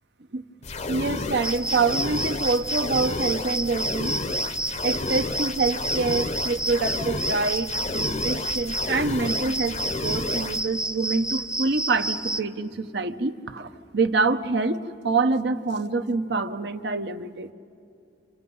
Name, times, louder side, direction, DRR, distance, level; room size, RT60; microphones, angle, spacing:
sound 1, 0.6-10.6, left 3 dB, 40° left, 0.7 m, -32 dB
voice 1, 0.9-4.2 4.8-17.5, right 3 dB, 70° right, 9 dB, 1.0 m, -26 dB
sound 2, 1.4-12.4, right 1 dB, 5° right, 0.5 m, -30 dB
29.5 x 28.0 x 5.5 m, 2.6 s
head